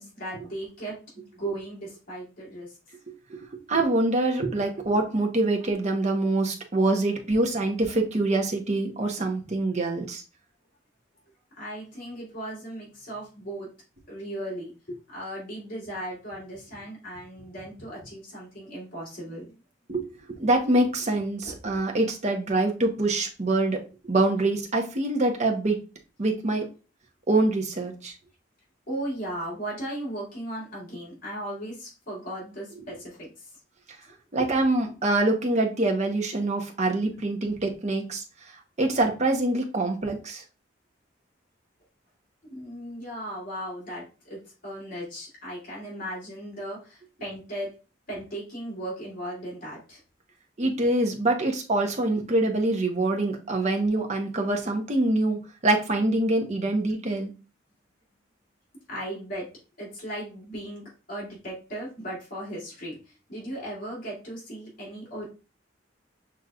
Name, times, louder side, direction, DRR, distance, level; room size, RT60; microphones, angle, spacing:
voice 1, 0.0-2.7 11.6-13.7 14.1-19.5 21.4-21.6 28.9-33.5 42.5-47.7 48.1-50.0 58.9-59.5 59.8-65.3, right 1 dB, 45° left, -6 dB, 2.5 m, -37 dB
voice 2, 3.1-3.4 3.7-10.2 19.9-25.8 26.2-26.7 27.3-28.1 34.3-38.2 38.8-40.4 50.6-57.3, right 2 dB, 40° right, 2 dB, 0.8 m, -25 dB
6.1 x 3.0 x 2.4 m, 0.33 s
head